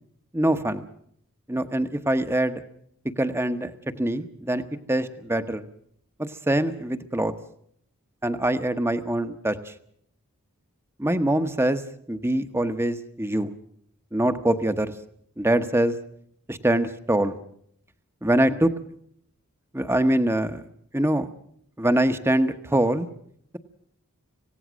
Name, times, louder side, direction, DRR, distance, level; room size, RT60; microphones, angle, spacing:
voice 1, 0.3-0.9 1.5-2.6 3.2-4.6 4.9-5.6 6.2-7.3 8.2-9.7 11.0-11.8 12.1-13.5 14.1-14.9 15.4-16.0 16.5-17.4 18.2-18.7 19.7-20.6 20.9-21.3 21.8-23.1, right 1 dB, 10° right, 10 dB, 1.0 m, -24 dB
26.0 x 17.0 x 6.3 m, 0.66 s
head